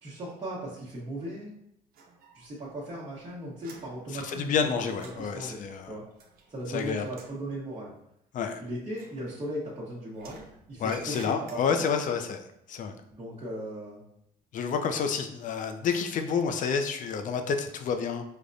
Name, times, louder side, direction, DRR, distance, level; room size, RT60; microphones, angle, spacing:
voice 1, 0.0-1.5 2.3-4.8 5.2-5.6 5.8-6.0 6.5-7.9 8.6-11.8 13.1-14.0, right 1 dB, 30° right, -8 dB, 1.0 m, -37 dB
sound 1, 1.9-2.7 3.0-6.7 7.0-7.5 8.9-9.8 10.1-12.0, right 4 dB, 60° right, 0.6 m, -52 dB
voice 2, 4.1-6.0 6.7-7.1 8.3-8.6 10.8-13.0 14.5-18.2, left 6 dB, 50° left, 6 dB, 0.4 m, -29 dB
4.9 x 2.1 x 2.6 m, 0.76 s
cardioid pair, 110°, 17 cm